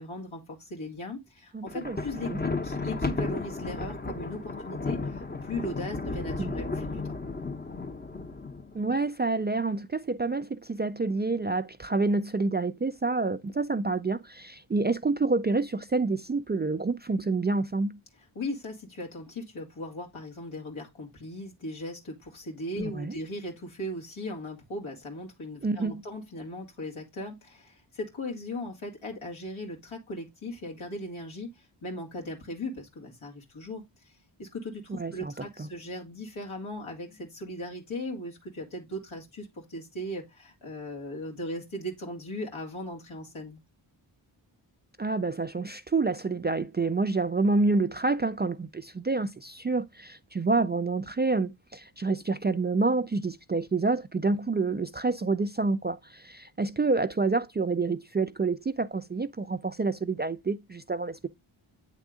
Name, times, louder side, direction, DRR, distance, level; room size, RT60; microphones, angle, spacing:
voice 1, 0.0-7.1 18.4-34.1 34.4-43.6, left 1 dB, 75° left, 2.2 m, -38 dB
voice 2, 1.5-2.4 6.4-6.6 8.7-18.0 22.8-23.2 25.6-26.0 34.9-35.7 45.0-61.3, right 3 dB, 25° right, 0.3 m, -28 dB
Thunder, 1.7-8.9, left 3 dB, 20° left, 0.8 m, -34 dB
8.2 x 3.5 x 3.7 m
cardioid pair, 45°, 49 cm